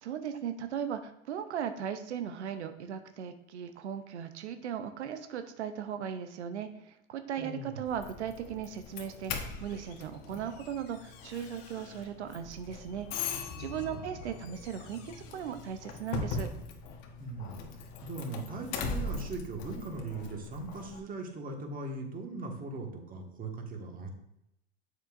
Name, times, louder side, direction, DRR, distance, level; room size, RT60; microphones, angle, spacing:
voice 1, 0.0-16.5, right 8 dB, 85° right, 9 dB, 0.7 m, -38 dB
voice 2, 7.4-7.8 13.9-14.0 17.2-24.1, right 3 dB, 25° right, 2 dB, 1.6 m, -40 dB
Doorbell, 7.9-21.0, left 4 dB, 55° left, 1.2 m, -40 dB
7.3 x 6.6 x 2.5 m, 0.80 s
hypercardioid pair, 100°, 34 cm